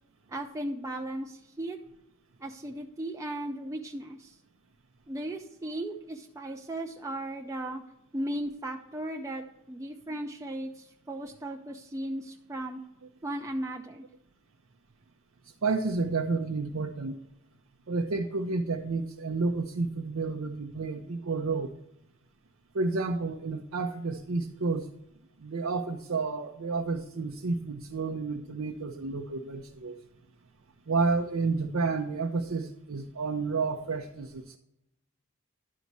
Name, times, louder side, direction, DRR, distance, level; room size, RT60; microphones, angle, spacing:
voice 1, 0.3-1.8 2.4-4.4 5.1-7.8 8.1-12.8 13.2-14.0, right 1 dB, 15° right, 2 dB, 0.4 m, -36 dB
voice 2, 15.6-17.2 17.9-21.7 22.7-24.9 25.4-30.0 30.9-34.6, right 3 dB, 85° right, 2 dB, 0.6 m, -30 dB
11.5 x 4.1 x 4.6 m, 0.84 s
head